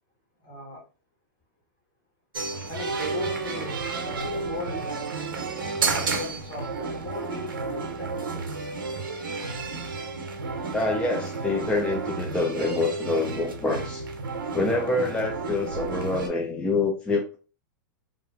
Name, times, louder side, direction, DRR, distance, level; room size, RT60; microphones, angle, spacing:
voice 1, 0.4-0.8 2.7-5.2 5.8-8.6, left 1 dB, 40° left, 1.4 m, -38 dB
sound 1, 2.3-16.3, right 4 dB, 90° right, 0.6 m, -31 dB
voice 2, 10.7-14.0 14.5-17.4, left 3 dB, 10° left, 0.4 m, -26 dB
2.9 x 2.4 x 2.3 m
hypercardioid pair, 120°, 11 cm